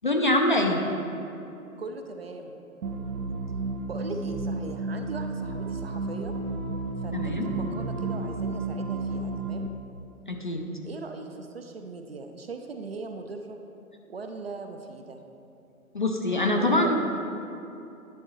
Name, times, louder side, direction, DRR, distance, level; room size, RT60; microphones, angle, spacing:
voice 1, 0.0-0.8 7.1-7.5 10.3-10.7 15.9-17.0, left 1 dB, 35° left, 2 dB, 0.4 m, -24 dB
voice 2, 1.8-2.6 3.8-6.3 7.0-9.7 10.8-13.6 14.1-15.2 16.5-17.0, right 3 dB, 45° right, 5 dB, 0.5 m, -39 dB
sound 1, 2.8-9.7, right 3 dB, 85° right, 0.6 m, -32 dB
10.0 x 5.3 x 3.0 m, 2.8 s
figure-of-eight pair, 135°, 43 cm